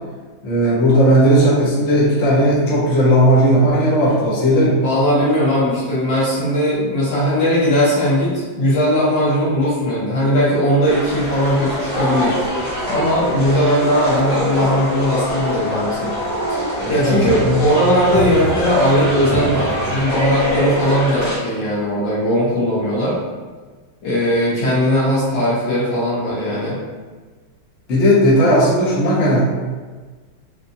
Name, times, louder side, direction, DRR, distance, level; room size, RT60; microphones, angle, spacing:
voice 1, 0.4-4.8 16.8-17.6 27.9-29.4, equal, 50° left, -8 dB, 0.9 m, -15 dB
voice 2, 4.8-12.4 12.9-16.1 16.5-23.2 24.0-26.8, equal, 65° left, -8 dB, 1.8 m, -18 dB
sound 1, 10.8-21.4, equal, 20° left, 1.3 m, -23 dB
4.2 x 2.5 x 2.7 m, 1.4 s
omnidirectional pair, 2.2 m